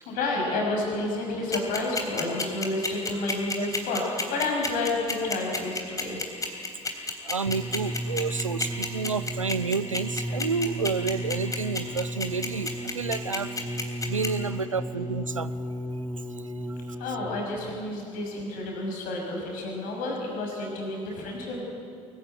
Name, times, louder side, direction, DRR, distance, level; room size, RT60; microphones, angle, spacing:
voice 1, 0.1-6.2 17.0-21.6, left 2 dB, 60° left, 0 dB, 6.1 m, -30 dB
sound 1, 1.5-14.3, left 3 dB, 20° left, 3.5 m, -29 dB
voice 2, 7.3-12.7 12.9-13.5 14.1-15.5, right 5 dB, 90° right, 16 dB, 0.5 m, -30 dB
sound 2, 7.5-17.6 18.4-18.5, right 1 dB, ahead, 1.9 m, -34 dB
23.5 x 15.0 x 9.3 m, 2.4 s
figure-of-eight pair, 50°, 16 cm